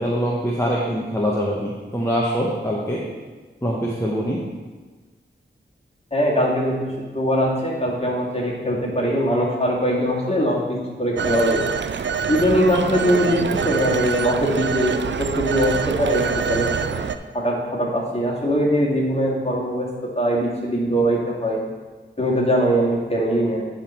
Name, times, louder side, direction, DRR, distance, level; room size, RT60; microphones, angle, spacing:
voice 1, 0.0-3.0 3.6-4.4, equal, 15° left, -5 dB, 1.1 m, -23 dB
voice 2, 6.1-11.6 12.3-17.1 17.3-19.9 20.2-21.6 22.2-23.6, equal, 30° left, -4 dB, 2.1 m, -21 dB
Telephone, 11.2-17.2, right 6 dB, 70° right, 0.4 m, -25 dB
10.0 x 3.7 x 4.4 m, 1.3 s
cardioid pair, 45°, 20 cm